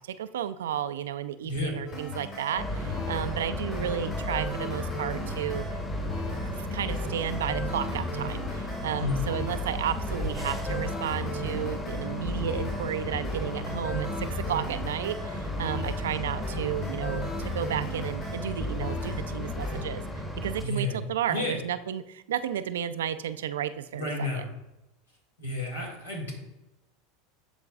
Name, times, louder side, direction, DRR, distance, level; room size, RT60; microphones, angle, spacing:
voice 1, 0.0-5.6 6.3-24.4, right 10 dB, 75° right, 12 dB, 0.3 m, -33 dB
voice 2, 1.4-1.8 8.9-9.2 20.6-21.0 21.3-21.6 23.9-24.5 25.4-26.3, left 2 dB, 85° left, -1 dB, 1.9 m, -31 dB
sound 1, 1.9-19.8, left 2 dB, 45° left, 2.3 m, -36 dB
sound 2, 2.6-20.6, left 1 dB, 15° left, 1.1 m, -35 dB
11.0 x 3.9 x 2.4 m, 0.95 s
hypercardioid pair, 85°, 0 cm